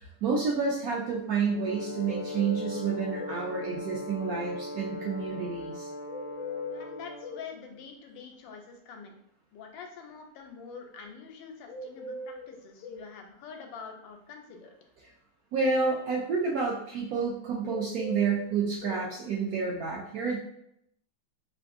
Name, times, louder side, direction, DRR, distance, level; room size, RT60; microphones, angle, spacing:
voice 1, 0.2-5.9 15.5-20.4, right 5 dB, 75° right, -3 dB, 0.8 m, -29 dB
Brass instrument, 1.5-7.5, left 1 dB, 20° left, 0.4 m, -39 dB
sound 1, 2.0-3.4 6.1-7.5 11.7-13.1 17.6-19.0, left 2 dB, 70° left, 0.7 m, -40 dB
voice 2, 6.7-9.2 9.5-14.7, left 6 dB, 85° left, 3 dB, 1.3 m, -46 dB
3.4 x 2.6 x 2.4 m, 0.75 s
omnidirectional pair, 2.0 m